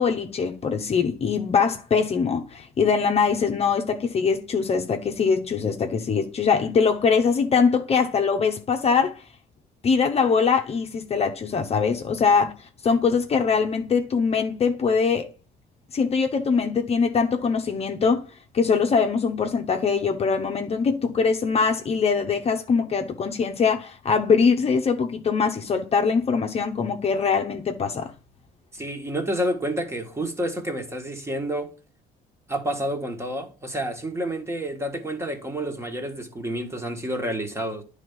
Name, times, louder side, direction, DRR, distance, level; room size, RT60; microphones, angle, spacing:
voice 1, 0.0-9.2 9.8-12.5 12.8-15.3 15.9-18.2 18.5-28.1, left 5 dB, 35° left, 0.8 m, -22 dB
voice 2, 28.7-31.7 32.5-37.8, right 1 dB, 15° right, 1.6 m, -29 dB
9.9 x 3.5 x 5.5 m
cardioid pair, 110°, 17 cm